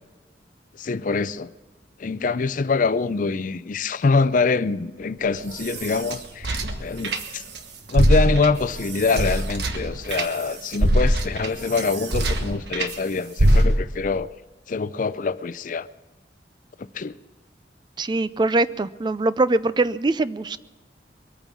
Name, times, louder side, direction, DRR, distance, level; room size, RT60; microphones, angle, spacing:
voice 1, 0.8-1.5 2.0-7.4 7.9-14.3 14.7-15.9 16.9-17.2, left 4 dB, 45° left, 0.5 m, -24 dB
sound 1, 5.2-7.6 7.9-12.9 13.4-14.1, equal, 65° right, 1.4 m, -23 dB
voice 2, 18.0-20.6, right 2 dB, 25° right, 0.4 m, -22 dB
22.5 x 9.0 x 6.1 m
head